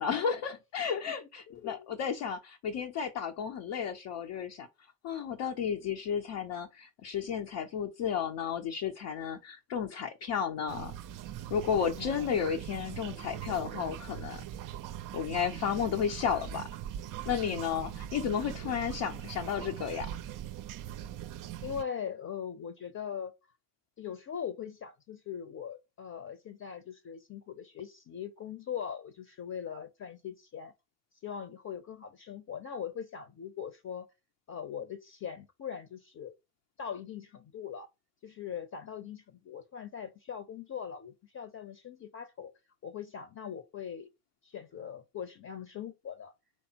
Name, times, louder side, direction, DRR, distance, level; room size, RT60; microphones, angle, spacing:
voice 1, 0.0-4.7 5.0-10.9 11.5-14.4 15.1-16.7 17.3-20.1, left 7 dB, 65° left, 0.8 m, -33 dB
voice 2, 1.5-1.9 12.0-12.3 17.7-17.9 21.6-23.3 24.0-30.7 31.2-34.1 34.5-36.3 36.8-37.9 38.2-42.5 42.8-44.1 44.4-46.3, left 8 dB, 40° left, 0.8 m, -41 dB
sound 1, 10.7-21.8, right 11 dB, 45° right, 0.5 m, -41 dB
4.6 x 3.5 x 2.8 m
hypercardioid pair, 45°, 46 cm